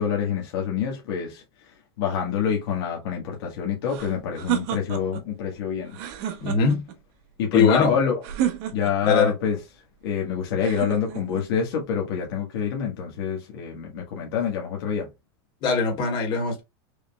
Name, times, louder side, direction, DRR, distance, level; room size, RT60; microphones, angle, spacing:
voice 1, 0.0-6.0 7.4-8.2 8.7-9.6 10.0-15.1, left 7 dB, 70° left, 1.5 m, -26 dB
sound 1, 3.9-5.3 5.9-7.0 8.2-9.2 10.6-11.5, right 10 dB, 50° right, 0.9 m, -30 dB
voice 2, 6.4-6.8 7.5-7.9 9.1-9.3 15.6-16.6, left 5 dB, 35° left, 2.4 m, -21 dB
5.1 x 3.2 x 2.3 m
supercardioid pair, 155°, 13 cm